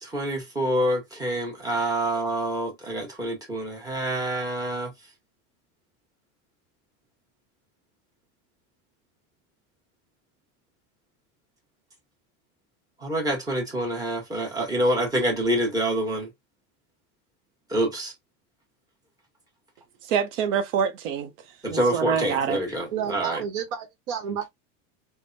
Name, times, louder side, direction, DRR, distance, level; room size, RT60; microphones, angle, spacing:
voice 1, 0.0-4.9 13.0-16.3 17.7-18.1 21.6-23.4, right 1 dB, 10° right, 1.1 m, -26 dB
voice 2, 20.1-21.3 21.7-22.6, right 7 dB, 85° right, 0.7 m, -25 dB
voice 3, 22.9-24.5, right 7 dB, 65° right, 1.1 m, -31 dB
3.3 x 2.2 x 2.6 m
supercardioid pair, 150°, 36 cm